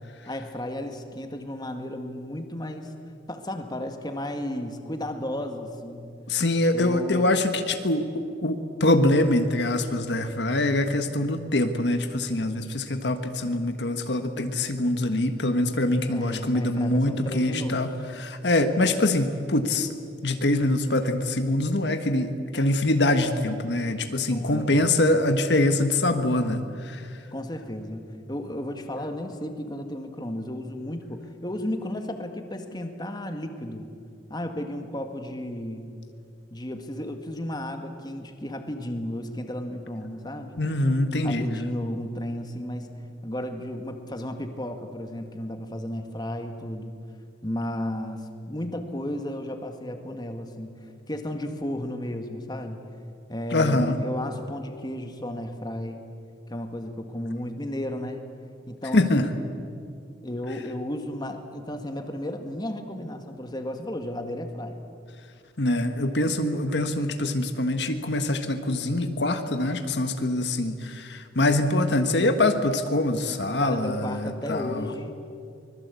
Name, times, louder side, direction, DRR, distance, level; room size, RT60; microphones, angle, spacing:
voice 1, 0.3-2.9 3.3-6.1 6.7-7.3 16.1-17.8 24.3-24.8 27.3-28.0 28.3-33.9 34.3-35.8 36.5-40.5 41.2-42.9 43.2-46.9 47.4-50.7 51.1-52.8 53.3-56.0 56.5-58.2 58.7-59.4 60.2-64.7 73.6-75.2, left 1 dB, 25° left, 5 dB, 1.9 m, -33 dB
voice 2, 6.3-17.9 18.2-19.9 20.2-27.0 40.6-41.5 53.5-54.0 58.9-59.3 65.6-74.9, left 1 dB, 70° left, 7 dB, 1.4 m, -24 dB
24.5 x 21.5 x 8.3 m, 2.4 s
head